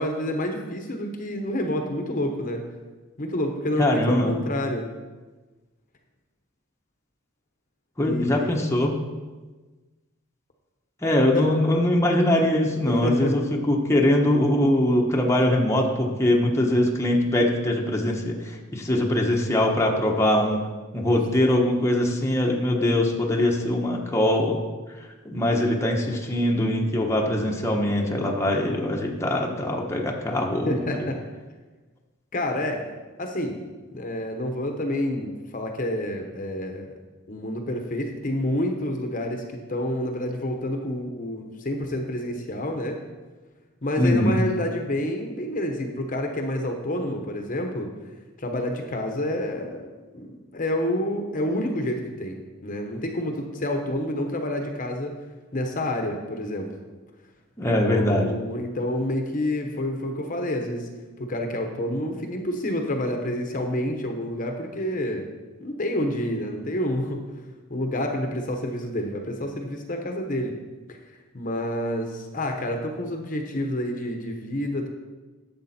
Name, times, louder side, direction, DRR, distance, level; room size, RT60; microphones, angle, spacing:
voice 1, 0.0-2.6 3.2-4.9 8.0-8.5 11.3-11.5 12.9-13.4 21.6-21.7 30.7-31.2 32.3-32.8 33.2-33.6 33.9-36.9 37.3-43.0 43.8-47.9 48.4-49.9 50.1-55.2 55.5-56.7 57.6-60.9 61.2-65.3 65.6-67.2 67.7-70.6 71.3-74.9, left 1 dB, 40° left, 4 dB, 1.0 m, -28 dB
voice 2, 3.8-4.3 8.0-9.0 11.0-20.6 20.9-24.6 25.2-31.0 44.0-44.4 57.6-58.3, left 1 dB, 15° left, -1 dB, 1.1 m, -22 dB
12.0 x 7.6 x 4.3 m, 1.3 s
head